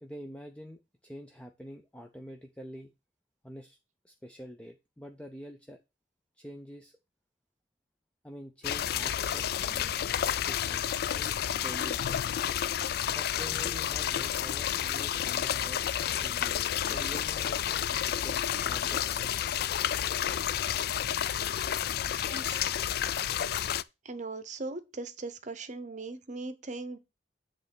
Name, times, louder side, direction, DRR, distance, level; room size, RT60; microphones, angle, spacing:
voice 1, 0.0-2.9 3.4-3.8 4.0-5.8 6.4-7.0 8.2-12.2 13.1-19.5, equal, 5° left, 0.5 m, -47 dB
sound 1, 8.6-23.8, left 10 dB, 60° left, 0.3 m, -30 dB
voice 2, 22.2-22.6 24.0-27.0, right 3 dB, 40° right, 0.8 m, -39 dB
8.0 x 3.2 x 6.0 m
head